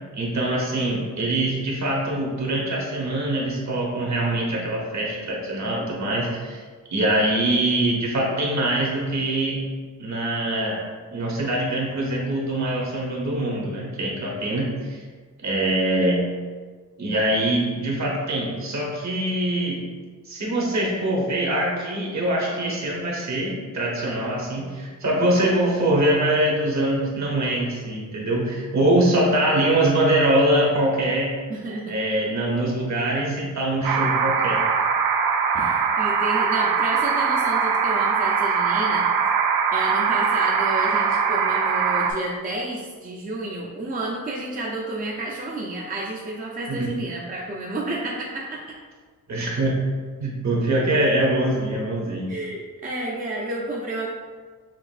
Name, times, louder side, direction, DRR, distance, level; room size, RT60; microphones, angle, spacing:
voice 1, 0.1-6.6 6.9-9.6 10.0-10.8 11.1-15.0 15.4-16.2 17.0-19.8 20.2-31.3 31.9-34.9 46.7-46.9 49.3-49.8 50.2-52.3, right 1 dB, 50° right, -2 dB, 1.1 m, -23 dB
voice 2, 28.9-29.3 31.5-31.9 35.5-39.0 39.7-48.6 50.8-50.9 52.3-54.1, right 2 dB, 25° right, -3 dB, 0.5 m, -31 dB
sound 1, 33.8-42.1, right 6 dB, 75° right, 0.5 m, -22 dB
6.0 x 2.5 x 2.5 m, 1.5 s
cardioid pair, 100°, 35 cm